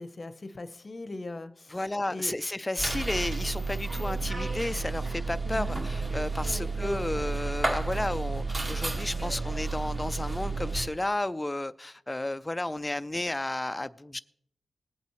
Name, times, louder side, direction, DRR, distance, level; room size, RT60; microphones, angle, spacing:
voice 1, 0.0-1.8 2.1-2.4 5.4-5.8 6.4-6.7, left 2 dB, 35° left, 0.8 m, -40 dB
voice 2, 1.7-14.2, left 1 dB, 15° left, 0.4 m, -32 dB
sound 1, 2.8-10.9, right 3 dB, 30° right, 1.7 m, -31 dB
20.0 x 8.5 x 3.1 m
wide cardioid pair, 105°, 0 cm